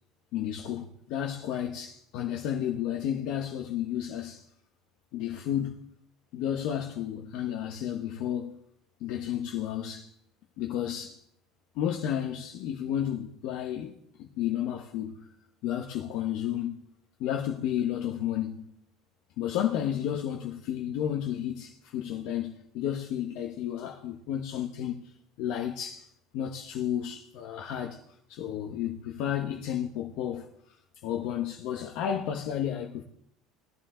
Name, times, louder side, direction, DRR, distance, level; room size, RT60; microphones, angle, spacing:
voice 1, 0.3-4.4 5.1-5.8 6.3-8.6 9.0-10.1 10.6-11.2 11.7-15.3 15.6-16.8 17.2-18.7 19.4-25.0 25.4-26.1 26.3-28.0 28.3-30.8 31.0-33.0, left 10 dB, 50° left, 1.0 m, -32 dB
19.0 x 11.5 x 3.8 m
cardioid pair, 175°, 0 cm